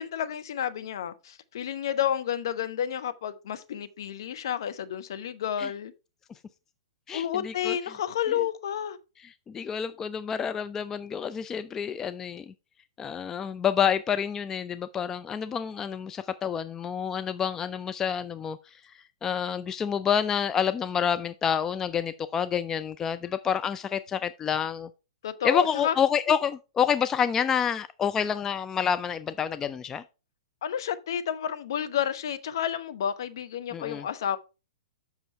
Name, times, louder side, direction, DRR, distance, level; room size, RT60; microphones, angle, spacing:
voice 1, 0.0-5.9 7.1-9.0 25.2-25.9 30.6-34.4, left 9 dB, 55° left, 0.8 m, -30 dB
voice 2, 7.1-7.8 9.5-12.5 13.0-18.6 19.2-24.9 25.4-30.0 33.7-34.0, left 8 dB, 15° left, 0.3 m, -28 dB
7.7 x 6.0 x 4.4 m
figure-of-eight pair, 110°, 3 cm